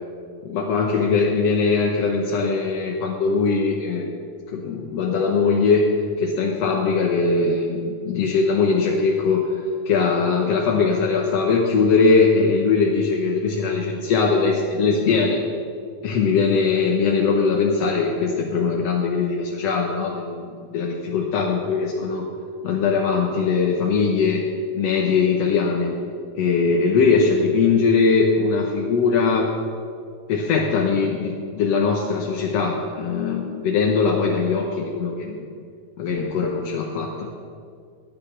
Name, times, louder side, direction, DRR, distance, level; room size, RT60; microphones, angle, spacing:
voice 1, 0.4-4.1 4.5-5.9 6.2-9.5 9.9-15.4 16.0-22.3 22.6-24.5 24.7-26.0 26.3-29.5 30.3-35.5 36.0-37.3, left 4 dB, 75° left, 0 dB, 1.5 m, -21 dB
13.5 x 9.4 x 5.9 m, 2.2 s
omnidirectional pair, 4.3 m